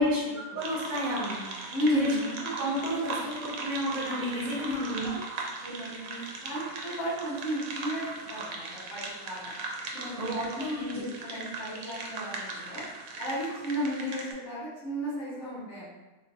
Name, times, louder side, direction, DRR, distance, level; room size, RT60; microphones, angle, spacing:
voice 1, 0.0-0.6 1.7-2.3 4.6-4.8 5.6-9.5 9.9-12.8 13.2-15.9, equal, 65° left, -9 dB, 1.8 m, -33 dB
voice 2, 0.5-1.4 1.9-2.1 2.4-5.2 10.2-11.1, equal, 60° right, -6 dB, 1.2 m, -32 dB
sound 1, 0.6-14.3, right 3 dB, 80° right, 1.0 m, -39 dB
3.6 x 2.9 x 2.7 m, 1.1 s
omnidirectional pair, 1.5 m